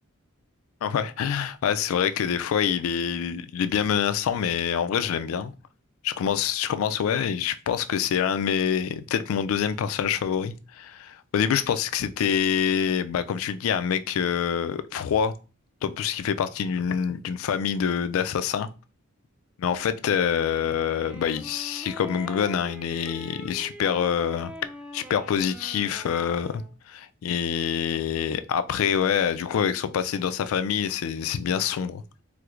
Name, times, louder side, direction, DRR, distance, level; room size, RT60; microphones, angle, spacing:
voice 1, 0.8-5.5 6.0-15.3 15.8-18.7 19.6-24.5 24.9-32.0, left 8 dB, 75° left, 0.3 m, -26 dB
sound 1, 20.2-26.7, equal, 5° right, 0.3 m, -42 dB
4.4 x 2.0 x 2.4 m
head